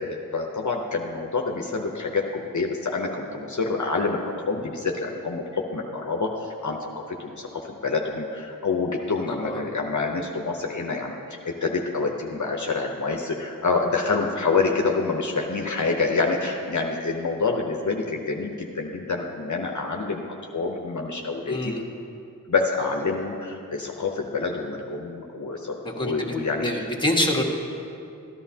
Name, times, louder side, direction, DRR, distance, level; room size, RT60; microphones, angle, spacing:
voice 1, 0.0-6.9 7.2-20.2 20.5-21.7 22.5-26.9, left 4 dB, 60° left, 1 dB, 0.8 m, -27 dB
voice 2, 9.3-9.6 21.5-21.8 25.8-26.3 26.6-27.4, left 1 dB, 15° left, -1 dB, 1.4 m, -26 dB
13.5 x 11.0 x 2.8 m, 2.6 s
wide cardioid pair, 40°, 34 cm